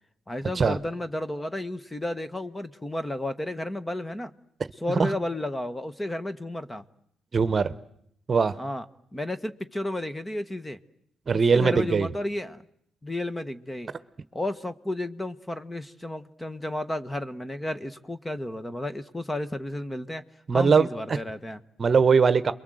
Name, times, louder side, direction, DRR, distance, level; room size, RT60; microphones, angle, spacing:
voice 1, 0.3-4.3 4.8-6.8 8.6-8.8 9.1-10.8 11.3-12.6 13.0-13.9 14.3-20.2 20.5-21.6, left 1 dB, 15° left, 12 dB, 1.2 m, -32 dB
voice 2, 7.3-7.7 8.3-8.6 11.3-12.1 20.5-20.9 21.8-22.5, right 5 dB, 35° right, 14 dB, 1.1 m, -20 dB
28.5 x 22.5 x 7.9 m, 0.73 s
cardioid pair, 90°, 0 cm